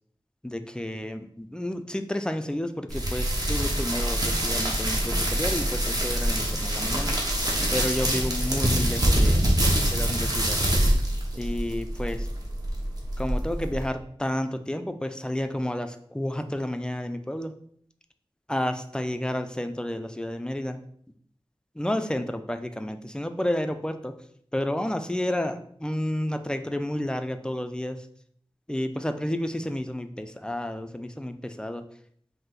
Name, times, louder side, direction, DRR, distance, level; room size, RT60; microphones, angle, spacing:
voice 1, 0.4-7.2 7.7-9.4 9.9-10.6 11.3-12.3 13.2-17.5 18.5-20.8 21.8-24.1 24.5-28.0 28.7-31.8, left 1 dB, 10° left, 8 dB, 0.3 m, -31 dB
sound 1, 2.9-13.9, right 1 dB, 40° right, 0.9 m, -25 dB
5.2 x 2.1 x 3.8 m, 0.65 s
wide cardioid pair, 75°, 10 cm